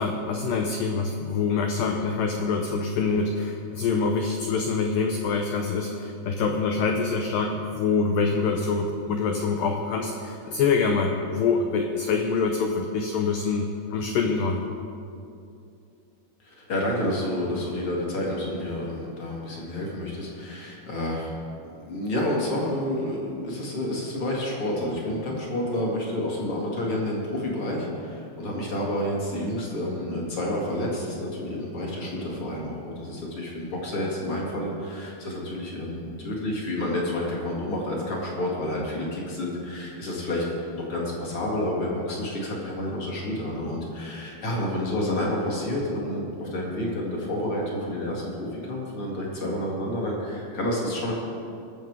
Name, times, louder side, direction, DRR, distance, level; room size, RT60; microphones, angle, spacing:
voice 1, 0.0-14.7, left 4 dB, 85° left, 3 dB, 2.0 m, -25 dB
voice 2, 16.4-21.3 21.7-40.5 40.8-51.1, left 1 dB, 45° left, -3 dB, 2.0 m, -29 dB
20.0 x 7.1 x 4.7 m, 2.6 s
omnidirectional pair, 4.9 m